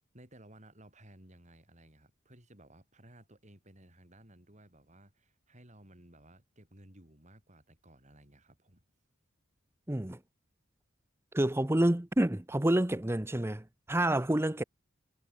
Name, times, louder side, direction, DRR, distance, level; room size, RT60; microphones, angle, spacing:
voice 1, 0.1-8.8, right 1 dB, 35° right, 7.8 m, -57 dB
voice 2, 9.9-10.2 11.3-14.6, right 1 dB, 10° right, 0.8 m, -28 dB
head